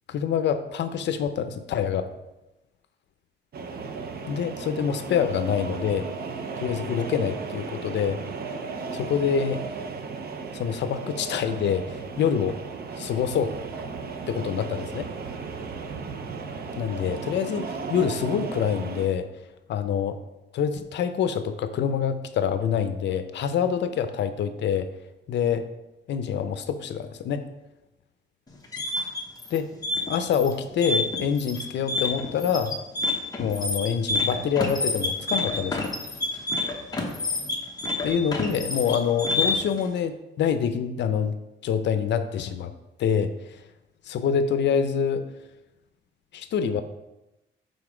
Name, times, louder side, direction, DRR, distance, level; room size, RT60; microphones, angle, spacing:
voice 1, 0.1-2.1 4.3-6.1 6.6-8.2 8.9-9.6 10.5-12.6 13.0-13.5 14.3-15.1 16.8-19.3 19.7-20.2 20.5-24.9 25.3-25.7 26.1-27.4 29.5-29.7 30.1-32.7 33.4-35.9 38.0-41.3 41.6-42.7 43.0-43.3 44.1-45.3 46.3-46.8, left 7 dB, 65° left, 10 dB, 0.6 m, -26 dB
sound 1, 3.5-19.1, right 4 dB, 55° right, 0.6 m, -35 dB
sound 2, 28.5-39.8, left 2 dB, 20° left, 0.9 m, -28 dB
7.0 x 3.8 x 4.9 m, 0.97 s
wide cardioid pair, 170°, 19 cm